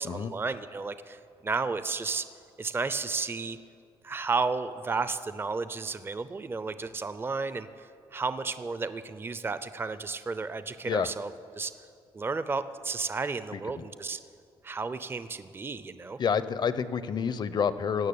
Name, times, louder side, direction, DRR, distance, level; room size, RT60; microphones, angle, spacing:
voice 1, 0.0-2.3 2.6-3.6 4.0-11.7 12.1-14.2 14.6-16.2, right 4 dB, 25° right, 13 dB, 0.5 m, -33 dB
voice 2, 13.5-13.8 16.2-18.1, left 6 dB, 45° left, 14 dB, 0.7 m, -29 dB
17.0 x 6.3 x 8.5 m, 2.4 s
cardioid pair, 90°, 10 cm